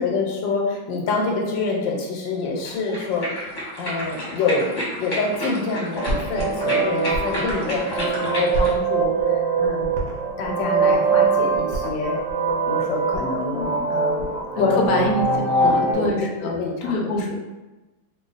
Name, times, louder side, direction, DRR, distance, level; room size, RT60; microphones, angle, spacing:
voice 1, 0.0-9.9 10.4-12.2 12.7-14.3 14.6-15.1 15.3-16.1 16.4-17.0, left 3 dB, 85° left, 0 dB, 1.4 m, -26 dB
sound 1, 2.6-8.8, equal, 35° left, 0.8 m, -31 dB
sound 2, 6.0-15.9, right 4 dB, 60° right, 0.9 m, -23 dB
voice 2, 14.6-16.5 16.8-17.4, left 1 dB, 70° left, 0 dB, 0.9 m, -25 dB
2.9 x 2.3 x 3.8 m, 1.1 s
omnidirectional pair, 2.0 m